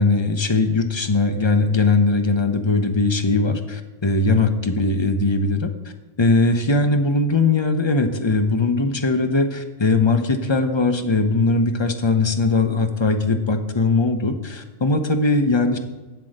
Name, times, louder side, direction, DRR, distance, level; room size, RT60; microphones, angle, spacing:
voice 1, 0.0-5.9 6.2-15.8, left 3 dB, 25° left, 7 dB, 0.7 m, -20 dB
8.3 x 7.6 x 6.5 m, 1.1 s
omnidirectional pair, 1.3 m